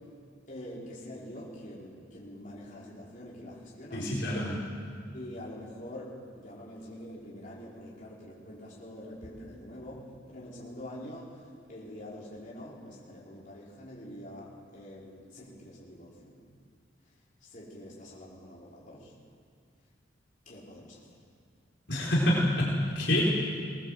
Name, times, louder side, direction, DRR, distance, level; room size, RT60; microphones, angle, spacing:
voice 1, 0.5-4.0 5.1-11.4 11.7-16.4 17.4-19.1 20.4-21.0, left 1 dB, 40° left, -6 dB, 4.9 m, -45 dB
voice 2, 3.9-4.6 21.9-23.2, left 1 dB, 60° left, -4 dB, 4.4 m, -27 dB
22.5 x 20.0 x 7.7 m, 2.2 s
head